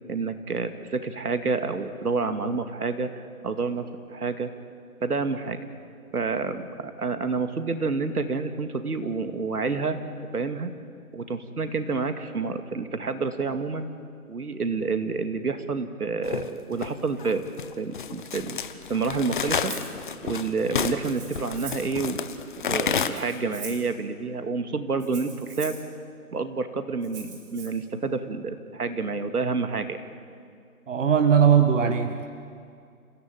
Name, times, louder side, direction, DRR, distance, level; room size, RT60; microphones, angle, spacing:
voice 1, 0.1-4.5 5.0-5.6 6.1-10.0 10.3-10.7 11.1-13.9 14.3-17.4 17.8-18.6 18.9-19.7 20.2-22.2 22.6-25.7 26.3-30.0, right 4 dB, 75° right, 8 dB, 2.4 m, -29 dB
sound 1, 16.2-23.1, left 7 dB, 35° left, 1.1 m, -30 dB
Rattle (instrument), 19.7-19.9 21.0-22.0 23.0-23.9 25.0-25.9 27.0-27.7, right 4 dB, 35° right, 5.7 m, -42 dB
voice 2, 30.9-32.3, right 7 dB, 55° right, 7 dB, 1.6 m, -20 dB
29.5 x 17.0 x 9.1 m, 2.3 s
figure-of-eight pair, 155°, 45 cm